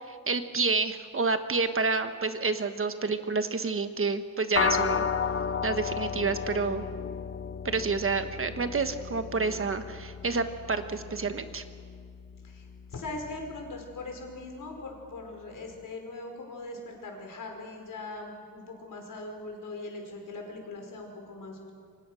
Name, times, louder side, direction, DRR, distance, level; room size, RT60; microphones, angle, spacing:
voice 1, 0.1-5.1 5.6-6.9 7.6-11.6, right 4 dB, 40° right, 9 dB, 1.3 m, -29 dB
sound 1, 4.6-14.1, left 6 dB, 45° left, 0.7 m, -34 dB
voice 2, 12.4-21.7, left 2 dB, 75° left, 2 dB, 5.2 m, -40 dB
28.0 x 24.5 x 6.4 m, 2.2 s
wide cardioid pair, 155°, 32 cm